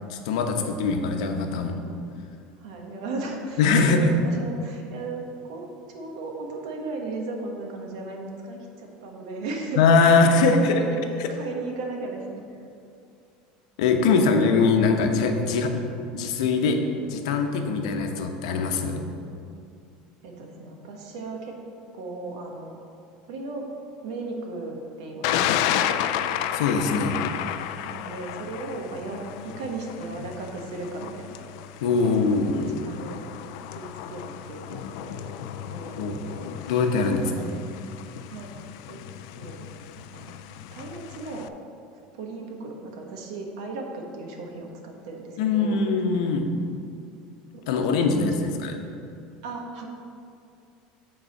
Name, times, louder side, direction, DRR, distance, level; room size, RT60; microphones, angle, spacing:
voice 1, 0.2-1.7 3.6-4.1 9.8-10.8 11.2-11.3 13.8-15.7 16.1-19.0 26.5-27.2 31.8-32.8 36.0-36.2 36.7-37.3 45.4-46.5 47.7-48.8, left 4 dB, 85° left, 4 dB, 0.9 m, -22 dB
voice 2, 2.6-9.8 10.4-10.9 11.3-12.6 13.9-14.0 20.2-21.6 21.9-22.8 23.2-23.7 24.0-26.3 27.8-31.5 32.0-32.4 32.7-33.4 33.7-35.3 35.7-37.6 38.3-39.0 39.3-39.7 40.0-40.3 40.7-41.5 41.9-45.8 47.5-48.5 49.4-49.9, right 3 dB, 75° right, 1 dB, 1.4 m, -36 dB
Thunder, 25.2-41.5, left 10 dB, 70° left, 0.4 m, -33 dB
8.8 x 4.0 x 6.5 m, 2.5 s
cardioid pair, 155°, 3 cm